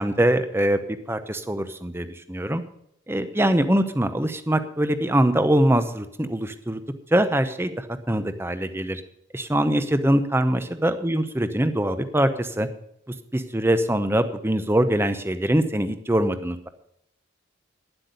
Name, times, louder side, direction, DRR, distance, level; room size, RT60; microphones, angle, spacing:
voice 1, 0.0-2.6 3.1-6.8 7.1-9.0 9.3-12.7 13.1-16.7, right 1 dB, 10° right, 10 dB, 0.8 m, -23 dB
11.0 x 7.9 x 8.0 m, 0.74 s
head